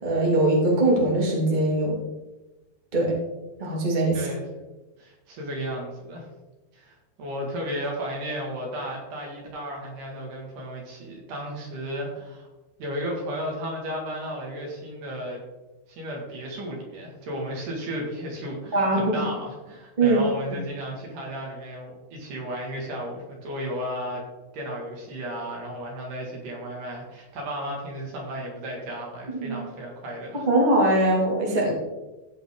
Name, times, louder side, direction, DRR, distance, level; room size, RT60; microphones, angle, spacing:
voice 1, 0.0-1.9 2.9-3.1 3.6-4.3 18.7-19.1 20.0-20.2 29.3-29.6 30.5-31.7, right 2 dB, 80° right, -3 dB, 0.4 m, -21 dB
voice 2, 4.1-4.4 5.0-6.3 6.7-12.5 12.8-15.4 15.9-24.2 24.5-30.5, equal, 50° right, -1 dB, 3.0 m, -34 dB
16.5 x 5.6 x 3.8 m, 1.1 s
omnidirectional pair, 5.7 m